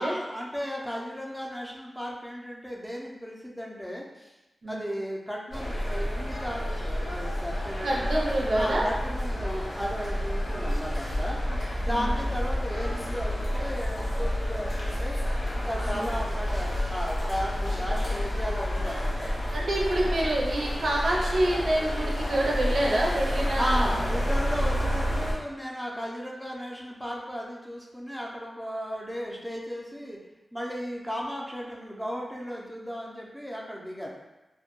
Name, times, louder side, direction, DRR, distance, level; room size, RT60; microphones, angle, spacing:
voice 1, 0.0-4.3 4.7-8.1 8.5-11.4 11.8-15.2 15.5-19.3 19.9-20.0 23.6-30.2 30.5-34.1, equal, ahead, -2 dB, 0.4 m, -35 dB
sound 1, 5.5-25.3, equal, 75° left, 0.8 m, -29 dB
voice 2, 7.8-8.9 11.5-11.6 11.9-12.1 15.9-16.0 19.5-23.9, right 1 dB, 85° right, -3 dB, 0.4 m, -27 dB
2.1 x 2.1 x 2.9 m, 1.0 s
wide cardioid pair, 70°, 0 cm